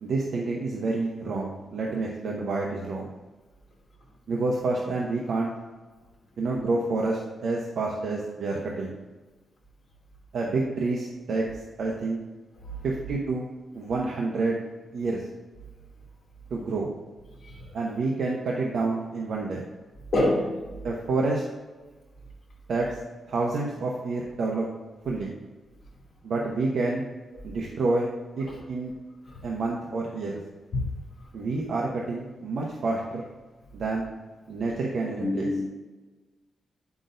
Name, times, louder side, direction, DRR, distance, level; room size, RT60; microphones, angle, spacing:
voice 1, 0.0-3.1 4.3-5.5 6.4-8.9 10.3-11.4 11.8-12.2 12.8-13.4 13.7-14.6 14.9-15.2 16.5-16.9 17.7-19.6 20.8-21.4 22.7-22.9 23.3-24.7 25.0-25.3 26.2-27.0 27.4-28.1 28.4-28.9 29.4-30.4 31.3-33.3 33.7-34.1 34.5-35.5, right 3 dB, 60° right, -2 dB, 0.8 m, -28 dB
voice 2, 20.1-20.7 28.5-28.6 29.3-29.4 30.7-30.8 35.2-35.7, left 1 dB, 45° left, -4 dB, 2.3 m, -27 dB
8.7 x 6.0 x 2.6 m, 1.2 s
wide cardioid pair, 165°, 0 cm